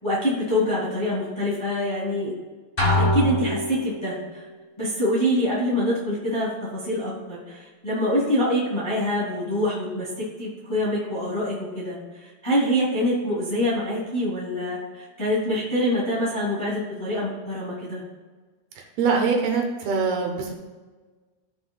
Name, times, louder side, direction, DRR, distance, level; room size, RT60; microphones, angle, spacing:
voice 1, 0.0-2.3 2.9-4.4 4.8-18.0, left 1 dB, 10° left, -7 dB, 1.6 m, -25 dB
sound 1, 2.8-4.2, equal, 40° left, 0.7 m, -23 dB
voice 2, 19.0-20.5, right 5 dB, 75° right, 1 dB, 2.9 m, -23 dB
15.0 x 6.0 x 2.4 m, 1.4 s
omnidirectional pair, 4.5 m